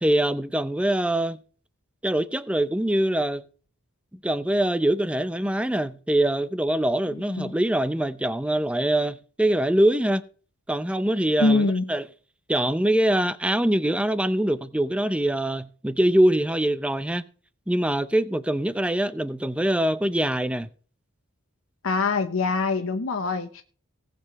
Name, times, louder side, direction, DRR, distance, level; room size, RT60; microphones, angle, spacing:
voice 1, 0.0-1.4 2.0-3.4 4.2-10.2 10.7-12.0 12.5-17.2 17.7-20.7, right 1 dB, 5° right, 0.6 m, -23 dB
voice 2, 11.4-11.9 21.8-23.6, left 3 dB, 70° left, 0.9 m, -24 dB
18.5 x 7.7 x 3.1 m
head